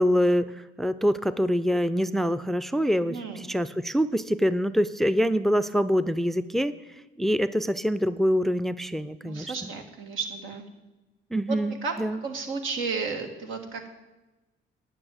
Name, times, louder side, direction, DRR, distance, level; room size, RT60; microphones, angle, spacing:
voice 1, 0.0-6.7 7.2-9.7 11.3-12.2, equal, ahead, 13 dB, 0.4 m, -25 dB
voice 2, 3.0-3.5 9.2-10.6 11.8-11.9 12.2-13.9, right 4 dB, 85° right, 5 dB, 1.7 m, -33 dB
10.0 x 6.2 x 8.8 m, 1.1 s
cardioid pair, 90°, 20 cm